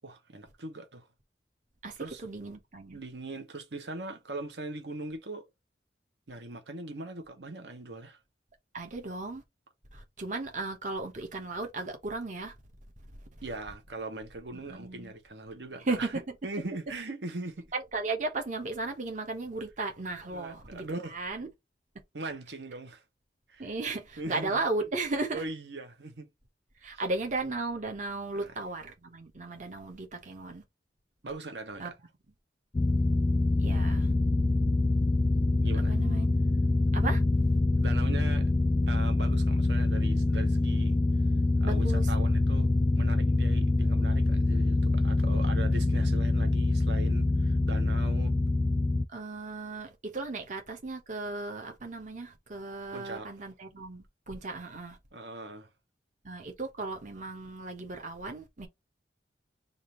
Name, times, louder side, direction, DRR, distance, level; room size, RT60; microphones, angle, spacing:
voice 1, 0.0-1.1 2.0-2.2 2.9-5.5 6.3-8.2 13.4-16.1 16.4-17.7 20.3-21.2 22.1-23.0 23.5-23.7 24.2-24.6 25.3-26.3 26.8-27.0 28.3-28.5 31.2-32.0 35.6-36.0 37.8-38.5 38.9-41.0 41.6-48.3 52.9-53.3 55.1-55.7, right 2 dB, 75° right, 1.0 m, -40 dB
voice 2, 1.8-3.0 8.7-9.4 9.9-12.5 14.5-15.1 15.8-16.2 17.7-21.5 23.6-25.4 26.8-30.6 31.8-31.9 33.6-34.1 35.8-36.3 36.9-37.2 41.6-42.1 49.1-55.0 56.2-58.7, right 3 dB, 45° right, 1.0 m, -35 dB
sound 1, 32.7-49.0, left 2 dB, 25° left, 0.3 m, -25 dB
3.6 x 2.6 x 4.3 m
head